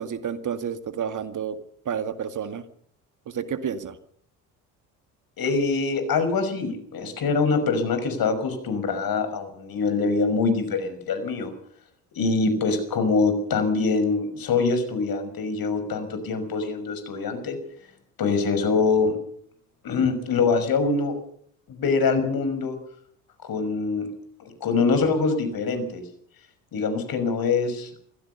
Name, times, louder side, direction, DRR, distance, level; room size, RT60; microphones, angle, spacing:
voice 1, 0.0-1.6 1.9-2.6 3.3-4.0, right 7 dB, 40° right, 11 dB, 1.9 m, -30 dB
voice 2, 5.4-11.5 12.1-17.6 18.2-19.2 19.8-21.1 21.7-22.8 23.4-24.1 24.4-26.0 26.7-27.9, left 4 dB, 50° left, 9 dB, 6.1 m, -24 dB
24.0 x 16.0 x 6.9 m, 0.63 s
hypercardioid pair, 60°, 44 cm